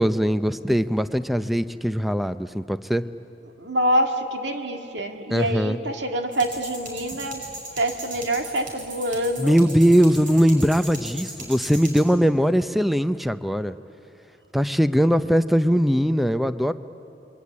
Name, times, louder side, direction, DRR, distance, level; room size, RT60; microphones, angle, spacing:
voice 1, 0.0-3.0 5.3-5.8 9.4-13.7 14.5-16.7, equal, ahead, 12 dB, 0.6 m, -20 dB
voice 2, 3.6-7.4 7.8-9.6, right 1 dB, 80° right, 4 dB, 2.1 m, -26 dB
sound 1, 6.3-12.0, right 2 dB, 50° right, 6.2 m, -38 dB
27.0 x 23.0 x 8.6 m, 2.9 s
head